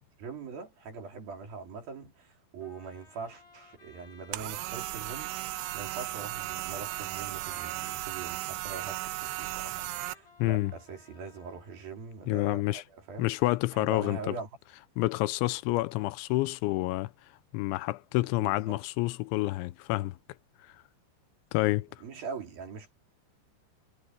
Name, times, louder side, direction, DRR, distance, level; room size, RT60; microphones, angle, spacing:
voice 1, 0.2-13.4 13.7-14.5 18.1-18.8 22.0-22.9, right 4 dB, 55° right, 5.1 m, -42 dB
Trumpet, 2.6-11.8, left 3 dB, 60° left, 7.7 m, -56 dB
sound 1, 4.3-10.1, right 17 dB, 80° right, 2.9 m, -36 dB
voice 2, 10.4-10.7 12.3-12.8 13.2-14.3 15.0-17.1 17.5-20.2 21.5-21.9, left 19 dB, 85° left, 3.0 m, -28 dB
omnidirectional pair, 5.3 m